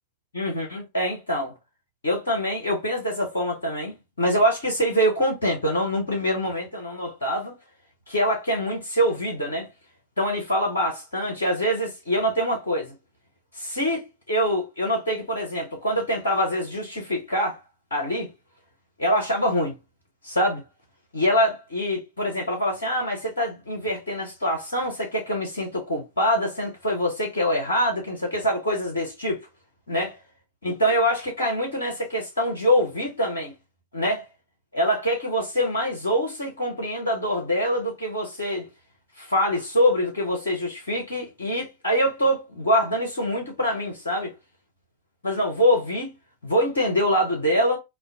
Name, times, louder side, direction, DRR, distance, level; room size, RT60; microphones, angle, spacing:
voice 1, 0.3-1.5 2.0-7.5 8.1-9.7 10.2-12.9 13.5-17.6 17.9-18.3 19.0-19.8 20.2-20.6 21.1-29.5 29.9-30.2 30.6-33.5 33.9-34.3 34.7-38.7 39.2-44.3 45.2-46.1 46.4-47.8, equal, 70° left, 0.8 m, -24 dB
2.3 x 2.2 x 2.4 m
figure-of-eight pair, 90°, 0 cm